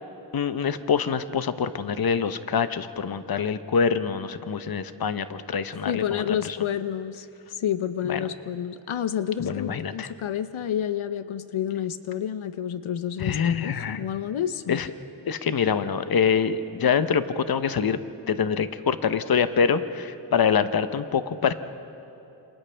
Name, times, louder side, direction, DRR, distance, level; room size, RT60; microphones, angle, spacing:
voice 1, 0.3-6.6 8.1-8.2 9.4-10.1 13.2-14.0 14.7-14.9 15.3-18.0 18.3-21.5, left 6 dB, 50° left, 11 dB, 0.8 m, -25 dB
voice 2, 5.9-7.3 7.6-14.8, left 9 dB, 85° left, 12 dB, 0.7 m, -29 dB
28.0 x 27.5 x 3.4 m, 2.8 s
wide cardioid pair, 110°, 48 cm